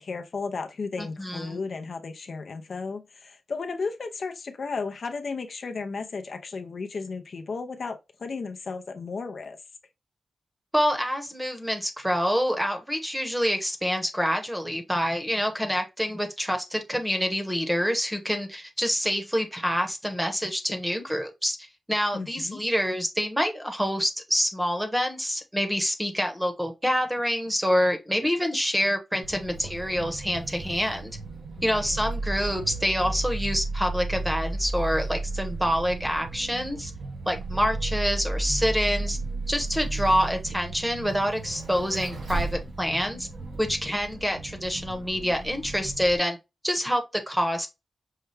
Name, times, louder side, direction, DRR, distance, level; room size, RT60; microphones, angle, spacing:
voice 1, 0.0-9.6 22.1-22.6 31.6-32.0, left 4 dB, 65° left, 0.5 m, -34 dB
voice 2, 1.0-1.6 10.7-31.1 31.6-36.9 37.3-39.2 39.5-43.3 43.6-46.4 46.6-47.7, equal, 5° right, 0.9 m, -27 dB
Vehicle, 29.2-46.2, right 2 dB, 80° right, 2.2 m, -34 dB
5.5 x 2.3 x 3.2 m
wide cardioid pair, 110°, 0 cm